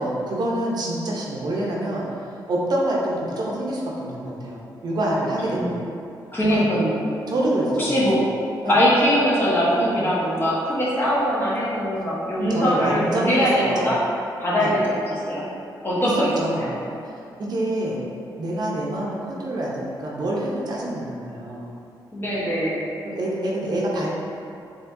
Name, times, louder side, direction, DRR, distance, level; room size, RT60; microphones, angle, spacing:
voice 1, 0.0-2.1 2.5-5.8 6.5-6.7 7.3-8.1 8.6-8.8 9.8-10.1 12.5-13.9 14.6-14.7 16.0-16.7 17.4-18.0 18.4-21.7 23.0-24.1, right 1 dB, 60° right, -4 dB, 0.7 m, -26 dB
voice 2, 5.4-5.8 6.3-7.1 7.8-8.2 8.7-14.0 14.4-15.4 15.8-16.3 16.6-16.7 22.1-22.8, equal, 30° left, -8 dB, 1.1 m, -22 dB
4.5 x 3.1 x 2.6 m, 2.6 s
cardioid pair, 90°, 8 cm